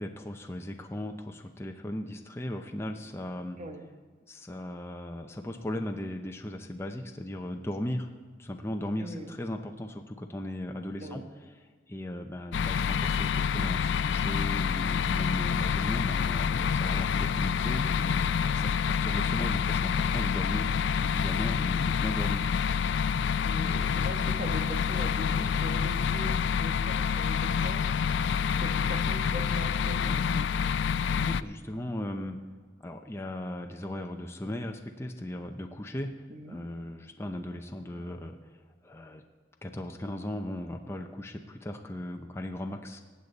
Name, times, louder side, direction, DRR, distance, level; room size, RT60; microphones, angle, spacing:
voice 1, 0.0-3.6 4.3-8.1 8.4-11.2 11.9-18.1 18.6-20.7 21.0-22.5 22.8-23.9 31.1-32.4 32.8-36.1 36.5-38.4 38.8-39.2 39.6-43.0, left 1 dB, 15° left, 4 dB, 0.6 m, -37 dB
voice 2, 9.0-9.3 11.0-11.3 23.4-28.2 28.5-30.5 36.3-36.6, equal, 45° right, 4 dB, 1.4 m, -41 dB
sound 1, 12.5-31.4, left 7 dB, 75° left, 0.4 m, -27 dB
sound 2, 16.2-17.3 17.7-19.7 20.0-20.2 20.7-20.9 21.3-21.4 21.8-22.0, left 2 dB, 45° left, 1.6 m, -50 dB
18.5 x 8.1 x 4.1 m, 1.5 s
head